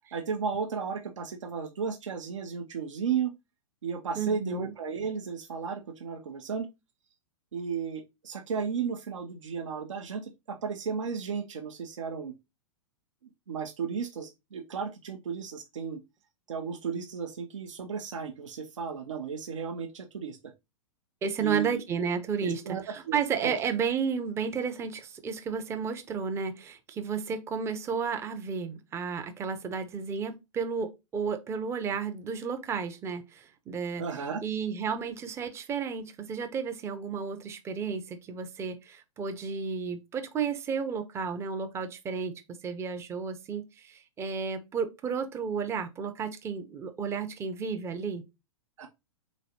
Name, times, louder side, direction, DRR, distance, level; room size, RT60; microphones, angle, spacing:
voice 1, 0.1-3.3 3.8-6.7 7.5-12.3 13.5-16.0 16.5-20.4 21.4-21.8 22.4-23.2 23.4-23.5 34.0-34.4 48.8-48.9, right 6 dB, 65° right, 0.7 m, -34 dB
voice 2, 4.1-4.7 21.2-22.6 22.9-34.0 34.4-48.2, right 6 dB, 15° right, 0.6 m, -32 dB
3.9 x 3.1 x 2.8 m
figure-of-eight pair, 105°, 17 cm